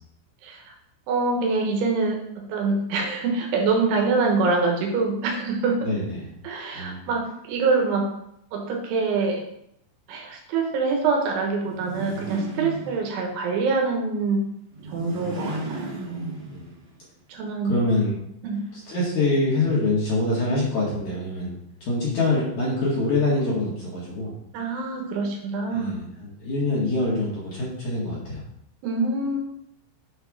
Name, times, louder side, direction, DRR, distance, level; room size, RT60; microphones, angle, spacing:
voice 1, 0.4-0.7 1.1-5.8 6.4-8.1 8.5-9.4 10.1-14.4 14.9-15.9 17.3-17.7 18.4-18.6 24.5-26.0 28.8-29.4, right 4 dB, 85° right, 1 dB, 3.6 m, -25 dB
voice 2, 5.8-6.2 6.7-7.0 16.5-16.7 17.6-18.2 18.7-24.3 25.7-28.4, left 2 dB, 50° left, -7 dB, 2.5 m, -25 dB
sound 1, 11.6-13.4 14.7-16.9, right 2 dB, 50° right, 2.2 m, -34 dB
7.7 x 4.6 x 4.8 m, 0.74 s
omnidirectional pair, 5.5 m